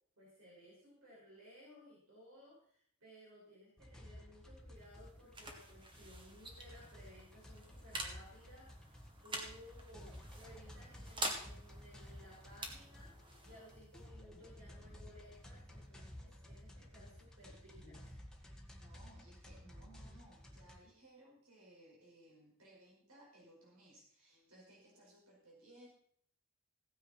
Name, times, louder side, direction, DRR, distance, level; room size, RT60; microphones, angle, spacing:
voice 1, 0.2-18.1, equal, 70° right, -5 dB, 5.6 m, -59 dB
sound 1, 3.8-20.8, equal, 5° left, 1.7 m, -54 dB
sound 2, 4.6-15.9, right 1 dB, 25° right, 1.9 m, -48 dB
voice 2, 15.3-15.8 16.3-17.2 17.9-18.0 18.8-25.9, right 1 dB, 85° right, -3 dB, 5.3 m, -62 dB
16.0 x 9.5 x 4.4 m, 0.62 s
head